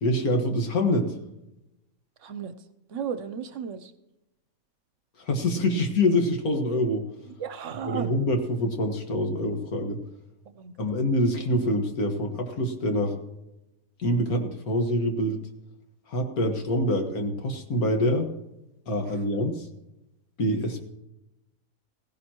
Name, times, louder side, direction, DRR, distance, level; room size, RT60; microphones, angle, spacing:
voice 1, 0.0-1.1 5.3-7.1 7.9-10.0 10.8-13.2 14.0-15.4 16.1-18.3 18.9-19.7 20.4-20.9, left 1 dB, 90° left, 4 dB, 2.0 m, -25 dB
voice 2, 2.2-2.5 2.9-3.9 7.3-8.1 10.5-10.9 19.1-19.2, right 7 dB, 65° right, 11 dB, 1.0 m, -35 dB
16.5 x 16.0 x 3.0 m, 0.91 s
omnidirectional pair, 1.5 m